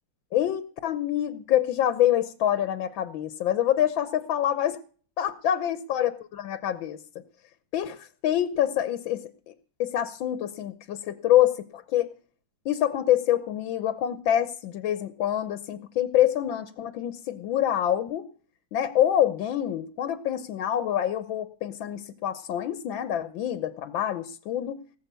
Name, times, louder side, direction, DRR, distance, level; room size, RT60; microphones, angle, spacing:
voice 1, 0.3-4.8 5.2-7.2 7.7-9.5 9.8-12.1 12.6-18.3 18.7-24.8, left 11 dB, 85° left, 13 dB, 1.6 m, -26 dB
19.0 x 7.8 x 6.8 m, 0.43 s
omnidirectional pair, 2.1 m